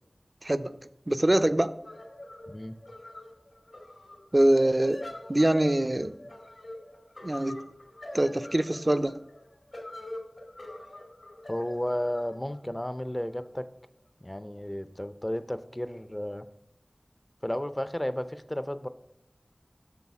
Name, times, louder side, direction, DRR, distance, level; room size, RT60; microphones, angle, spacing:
voice 1, 1.1-1.7 4.3-5.0 5.3-6.2 7.2-7.6 8.1-9.1, right 1 dB, 35° right, 0.5 m, -23 dB
sound 1, 1.8-13.4, left 1 dB, 80° left, 2.3 m, -45 dB
voice 2, 2.5-2.8 11.5-13.7 14.2-16.5 17.4-18.9, left 1 dB, 20° left, 0.5 m, -33 dB
8.3 x 6.6 x 4.8 m
wide cardioid pair, 45°, 0 cm